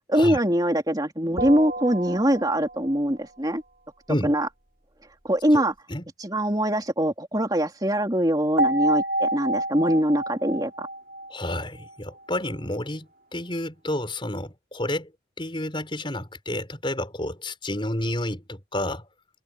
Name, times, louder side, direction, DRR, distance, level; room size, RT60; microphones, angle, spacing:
voice 1, 0.1-3.6 4.2-4.5 5.2-5.7 6.2-10.9, equal, 20° right, 3.1 m, -23 dB
sound 1, 1.4-2.9 8.6-11.9, right 1 dB, 45° right, 2.7 m, -28 dB
voice 2, 11.3-15.1 15.4-19.1, left 1 dB, 25° left, 5.7 m, -30 dB
head